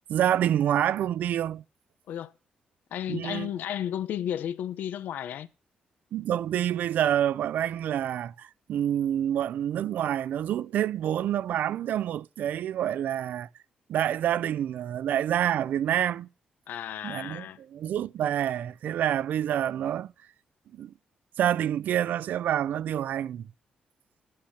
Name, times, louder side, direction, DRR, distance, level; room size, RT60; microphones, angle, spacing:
voice 1, 0.1-1.6 3.1-3.5 6.1-13.5 13.9-16.3 17.0-20.1 20.7-20.9 21.4-23.4, right 10 dB, 80° right, 0.5 m, -27 dB
voice 2, 2.9-5.5 16.7-17.6, left 10 dB, 85° left, 0.8 m, -33 dB
11.5 x 8.7 x 5.8 m
cardioid pair, 120°, 3 cm